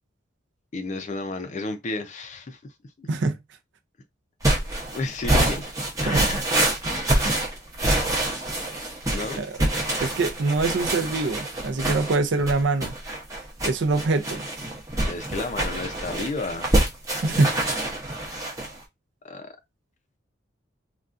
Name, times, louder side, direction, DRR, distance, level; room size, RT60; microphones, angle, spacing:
voice 1, 0.7-2.7 3.0-3.1 4.9-5.6 6.0-6.5 9.1-9.7 15.1-16.7 19.2-19.5, left 3 dB, 35° left, 0.4 m, -32 dB
sound 1, 4.4-18.7, right 1 dB, 15° right, 0.7 m, -26 dB
voice 2, 10.0-12.9 13.6-14.5 17.2-17.5, right 3 dB, 60° right, 0.4 m, -24 dB
3.7 x 2.3 x 2.4 m
head